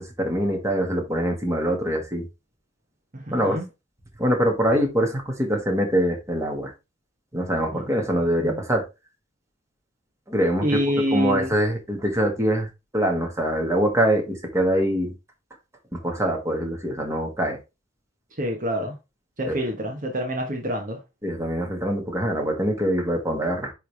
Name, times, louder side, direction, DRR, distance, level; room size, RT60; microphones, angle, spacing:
voice 1, 0.0-2.3 3.3-3.6 4.2-6.7 7.3-8.8 10.3-10.8 11.1-12.7 12.9-15.1 15.9-17.6 19.4-19.6 21.2-23.7, equal, 15° right, 1.8 m, -24 dB
voice 2, 3.1-3.6 7.7-8.6 10.6-11.5 18.4-18.9 19.4-21.0, equal, 40° right, 1.2 m, -27 dB
10.0 x 3.4 x 3.4 m
head